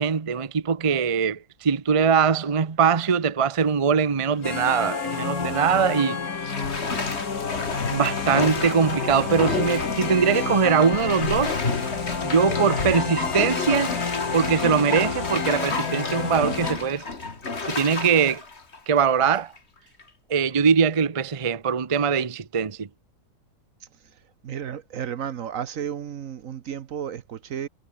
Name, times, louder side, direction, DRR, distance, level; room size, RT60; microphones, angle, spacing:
voice 1, 0.0-6.2 7.9-11.6 12.2-14.0 14.3-17.1 17.7-18.4 18.9-19.5 20.3-22.9, right 6 dB, 30° right, 0.7 m, -22 dB
Bathtub (filling or washing), 4.3-4.7 5.1-5.3 6.5-19.6 20.0-20.1, left 3 dB, 40° left, 2.7 m, -31 dB
sound 1, 4.4-16.7, left 5 dB, 60° left, 2.6 m, -29 dB
sound 2, 7.4-18.7, left 2 dB, 90° left, 8.2 m, -56 dB
voice 2, 24.4-27.7, right 9 dB, 60° right, 1.2 m, -33 dB
omnidirectional pair, 1.7 m